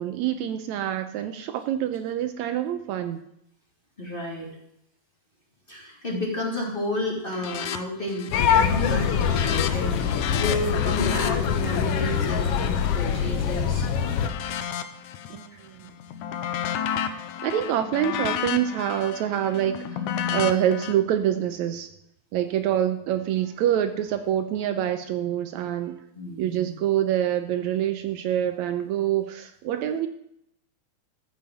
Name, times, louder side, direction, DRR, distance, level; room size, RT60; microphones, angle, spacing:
voice 1, 0.0-3.2 15.3-15.9 17.4-20.0 20.3-21.9 22.3-26.0 26.4-30.1, right 10 dB, 75° right, 8 dB, 2.0 m, -26 dB
voice 2, 4.0-4.5 5.7-13.9 15.5-15.6 26.1-26.7, left 1 dB, 20° left, -2 dB, 2.6 m, -31 dB
sound 1, 7.3-7.8 8.1-8.5 8.8-13.7 14.2-15.5 15.9-20.9, left 8 dB, 85° left, 2.3 m, -32 dB
sound 2, 8.3-14.3, left 7 dB, 65° left, 1.7 m, -24 dB
14.0 x 7.1 x 7.3 m, 0.76 s
omnidirectional pair, 3.5 m